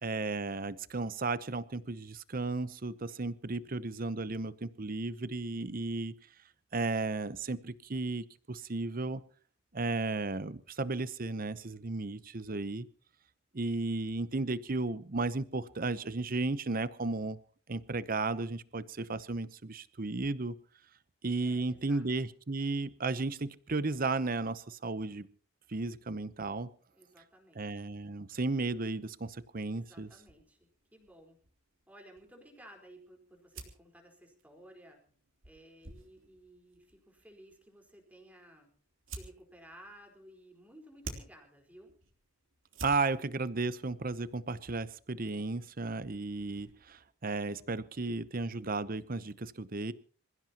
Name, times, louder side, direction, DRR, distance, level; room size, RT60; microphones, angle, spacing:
voice 1, 0.0-6.1 6.7-9.2 9.7-12.9 13.5-17.4 17.7-20.6 21.2-25.3 25.7-26.7 27.6-30.1 42.8-49.9, right 3 dB, 45° right, 15 dB, 0.8 m, -34 dB
voice 2, 21.4-22.3 26.9-27.6 29.7-31.4 31.9-35.0 35.4-38.7 39.1-42.0, right 1 dB, 10° right, 2 dB, 4.4 m, -56 dB
sound 1, 30.2-47.1, right 3 dB, 75° right, 3.3 m, -53 dB
27.0 x 16.0 x 3.0 m, 0.43 s
head